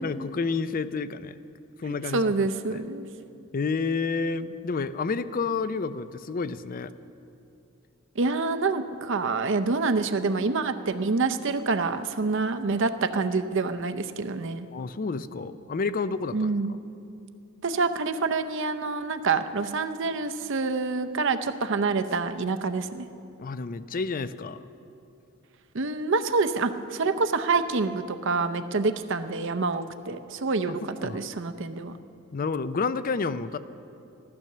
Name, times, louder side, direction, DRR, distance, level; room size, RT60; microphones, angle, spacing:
voice 1, 0.0-1.4 1.8-2.2 2.7-2.8 3.5-6.9 14.7-16.5 23.4-24.6 31.0-31.2 32.3-33.6, left 4 dB, 40° left, 14 dB, 0.5 m, -29 dB
voice 2, 2.1-3.0 8.2-14.7 16.3-16.7 17.6-23.1 25.7-31.9, right 4 dB, 60° right, 9 dB, 0.7 m, -27 dB
14.5 x 12.0 x 6.7 m, 2.7 s
head